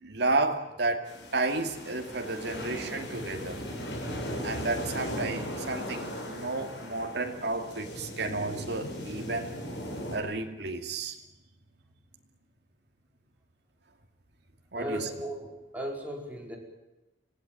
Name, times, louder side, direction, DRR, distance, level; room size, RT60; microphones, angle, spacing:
voice 1, 0.0-3.6 4.4-9.5 10.1-11.2 14.7-15.1, right 2 dB, 70° right, 3 dB, 2.5 m, -32 dB
sound 1, 1.0-10.2, equal, 80° left, 7.5 m, -38 dB
voice 2, 14.7-16.6, equal, 10° right, -1 dB, 5.1 m, -36 dB
26.5 x 17.0 x 9.1 m, 0.99 s
head